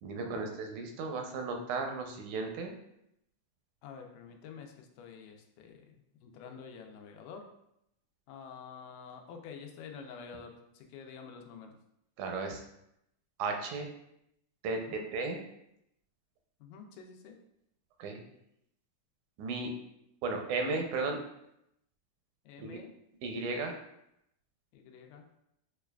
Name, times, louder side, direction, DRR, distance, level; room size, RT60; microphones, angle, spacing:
voice 1, 0.0-2.7 12.2-12.6 13.4-13.9 14.6-15.4 18.0-18.2 19.4-19.7 20.2-21.2 22.6-22.7 23.2-23.7, right 3 dB, 85° right, 3 dB, 2.0 m, -35 dB
voice 2, 3.8-7.4 8.3-11.8 14.9-15.1 16.6-17.4 22.5-22.9 24.7-25.3, left 6 dB, 90° left, 3 dB, 2.1 m, -48 dB
6.6 x 2.3 x 2.2 m, 0.79 s
omnidirectional pair, 3.5 m